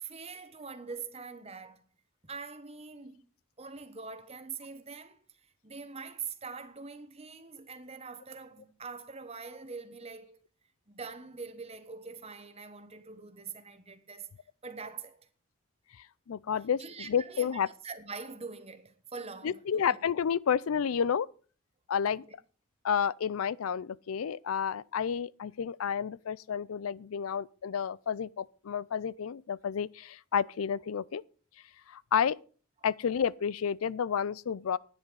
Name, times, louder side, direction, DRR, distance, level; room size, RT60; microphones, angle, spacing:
voice 1, 0.0-1.8 2.2-3.2 3.6-10.4 10.9-14.3 14.6-15.2 16.8-20.0 22.1-22.3, right 5 dB, 30° right, 1.2 m, -44 dB
voice 2, 16.3-16.8 17.1-17.7 19.4-21.3 21.9-22.2 22.8-31.2 31.9-32.4 32.8-34.8, left 7 dB, 90° left, 0.4 m, -30 dB
10.5 x 9.9 x 5.4 m
head